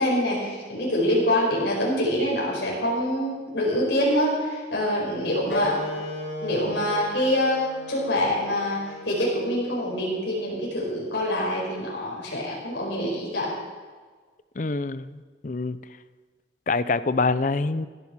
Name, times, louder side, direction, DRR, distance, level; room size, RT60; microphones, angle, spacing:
voice 1, 0.0-5.8 6.4-13.6, left 1 dB, 85° left, -4 dB, 4.9 m, -25 dB
Wind instrument woodwind instrument, 5.5-10.6, left 1 dB, 65° left, 3.9 m, -36 dB
voice 2, 14.6-15.8 16.7-17.9, left 3 dB, 45° left, 15 dB, 0.5 m, -25 dB
16.5 x 9.8 x 6.2 m, 1.5 s
head